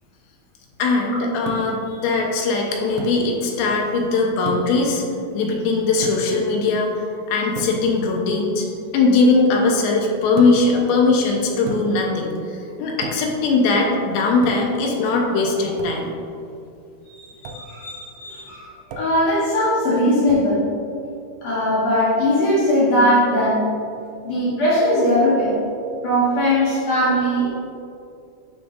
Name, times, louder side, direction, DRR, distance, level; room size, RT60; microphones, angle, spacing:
voice 1, 0.8-5.0 5.3-8.7 8.9-16.1, left 3 dB, 85° left, 0 dB, 3.0 m, -20 dB
sound 1, 1.5-1.9 3.0-3.2 4.5-4.8 6.0-6.4 7.6-7.8 10.4-10.8 11.7-12.1 13.0-13.4 14.4-14.8 15.8-16.0 17.4-17.7 18.9-19.2 20.3-20.5, right 3 dB, 85° right, 2.1 m, -33 dB
voice 2, 17.1-18.7 19.0-20.7 21.4-23.7 24.2-25.6 26.0-27.5, equal, 60° left, -8 dB, 1.8 m, -19 dB
11.5 x 5.2 x 2.6 m, 2.5 s
omnidirectional pair, 4.9 m